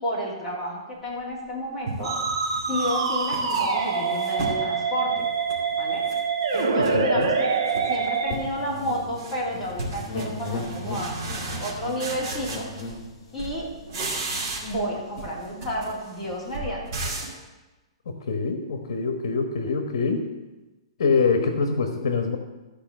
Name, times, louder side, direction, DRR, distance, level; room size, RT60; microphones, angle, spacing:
voice 1, 0.0-2.1 2.7-5.2 5.8-6.0 6.5-7.5 7.9-11.2 11.6-12.6 13.3-13.7 14.6-16.8, equal, 5° left, -10 dB, 3.3 m, -31 dB
sound 1, 1.2-1.3 1.9-4.7 5.1-6.2 6.5-7.3 7.7-8.1 8.4-13.1 13.4-14.9 15.2-17.4, right 2 dB, 35° right, 2.4 m, -35 dB
Musical instrument, 2.0-8.4, right 5 dB, 60° right, 1.5 m, -25 dB
voice 2, 6.9-7.3 18.1-20.3 21.0-22.4, left 4 dB, 65° left, 6 dB, 1.3 m, -24 dB
sound 2, 8.3-13.8 14.4-14.5 14.7-15.3, left 2 dB, 30° left, 2.6 m, -37 dB
13.5 x 5.0 x 7.5 m, 1.1 s
hypercardioid pair, 170°, 3 cm